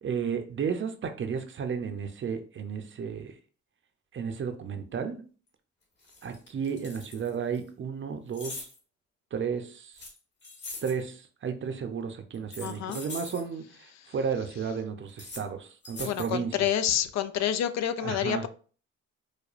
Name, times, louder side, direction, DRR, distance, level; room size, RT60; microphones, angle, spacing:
voice 1, 0.0-3.3 4.1-5.2 6.2-8.7 9.3-10.0 10.8-16.6 18.0-18.4, right 6 dB, 40° right, 0.6 m, -33 dB
sound 1, 5.5-5.6 6.0-7.6 8.3-8.8 10.0-11.0 12.3-13.4 15.1-15.4 15.8-16.3, left 3 dB, 35° left, 1.4 m, -42 dB
voice 2, 12.6-13.0 16.0-18.5, left 10 dB, 60° left, 0.4 m, -28 dB
4.8 x 2.1 x 2.5 m
cardioid pair, 90°, 30 cm